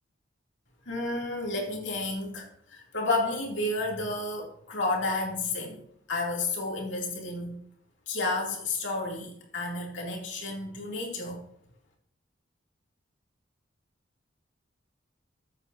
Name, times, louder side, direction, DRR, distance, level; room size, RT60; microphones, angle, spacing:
voice 1, 0.9-5.8 6.1-7.6 8.1-11.4, left 2 dB, 75° left, -1 dB, 2.7 m, -31 dB
14.5 x 8.3 x 2.7 m, 0.69 s
head